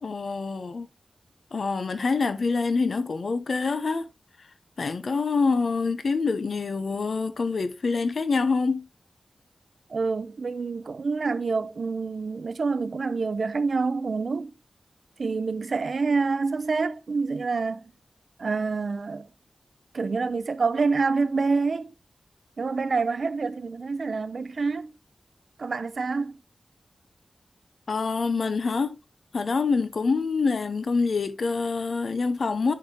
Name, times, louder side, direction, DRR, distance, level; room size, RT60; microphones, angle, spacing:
voice 1, 0.0-0.9 1.5-4.1 4.8-8.9 27.9-29.0 29.3-32.7, left 4 dB, 70° left, 0.7 m, -26 dB
voice 2, 9.9-14.5 15.2-17.9 18.4-19.3 19.9-21.9 22.6-24.9 25.6-26.4, right 4 dB, 65° right, 0.5 m, -27 dB
10.5 x 4.7 x 2.9 m
wide cardioid pair, 90°, 0 cm